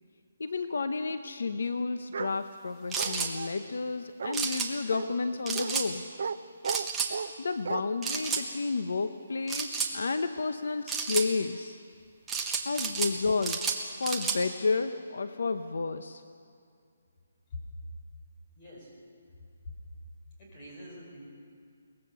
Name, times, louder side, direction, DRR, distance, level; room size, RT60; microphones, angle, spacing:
voice 1, 0.4-6.0 7.4-11.8 12.6-13.7 14.0-16.2, left 4 dB, 70° left, 10 dB, 0.8 m, -31 dB
Bark, 2.1-2.4 3.0-3.5 4.2-4.4 4.9-5.1 5.6-5.7 6.2-6.4 6.6-7.3 7.7-7.8, right 5 dB, 45° right, 0.6 m, -34 dB
sound 1, 2.9-3.3 4.3-4.7 5.5-5.9 6.6-7.1 8.0-8.4 9.5-9.9 10.9-11.3 12.3-13.1 13.4-14.4, right 6 dB, 5° right, 1.0 m, -31 dB
voice 2, 18.6-18.9 20.4-21.2, left 2 dB, 20° left, -3 dB, 5.1 m, -44 dB
22.5 x 19.0 x 6.9 m, 2.3 s
hypercardioid pair, 180°, 0 cm